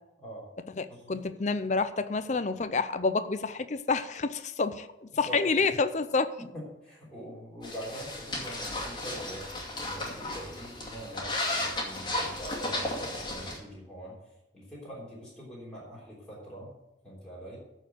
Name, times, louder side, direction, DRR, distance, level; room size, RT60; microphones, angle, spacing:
voice 1, 0.8-6.4, left 4 dB, 40° left, 11 dB, 0.6 m, -28 dB
voice 2, 5.3-5.7 6.4-14.2 14.5-16.7 17.0-17.6, equal, 5° left, -8 dB, 3.5 m, -43 dB
sound 1, 7.6-13.6, left 1 dB, 25° left, 2.4 m, -34 dB
13.5 x 4.6 x 7.7 m, 0.93 s
head